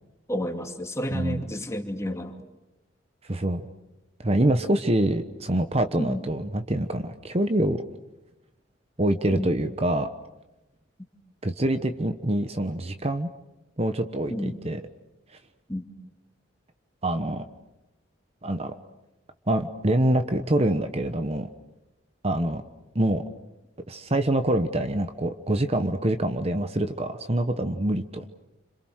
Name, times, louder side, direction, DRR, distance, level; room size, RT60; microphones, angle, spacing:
voice 1, 0.3-2.4 6.0-6.2 9.3-9.5 14.3-14.6 15.7-15.8, equal, 15° left, 4 dB, 2.6 m, -30 dB
voice 2, 1.1-1.4 3.3-3.6 4.2-7.8 9.0-10.1 11.4-13.3 13.8-14.8 17.0-17.5 18.4-18.7 19.5-21.5 22.2-22.6 22.9-23.2 23.9-28.2, right 1 dB, 30° right, 8 dB, 1.1 m, -25 dB
29.5 x 27.5 x 6.5 m, 0.99 s
head